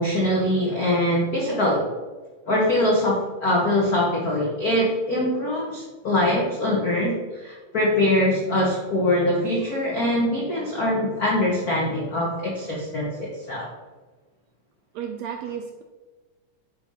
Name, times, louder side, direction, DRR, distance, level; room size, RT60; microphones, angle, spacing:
voice 1, 0.0-1.9 2.5-13.7, left 1 dB, 70° left, -4 dB, 0.8 m, -23 dB
voice 2, 14.9-15.8, right 8 dB, 80° right, 4 dB, 1.5 m, -33 dB
9.2 x 3.3 x 5.3 m, 1.2 s
omnidirectional pair, 3.5 m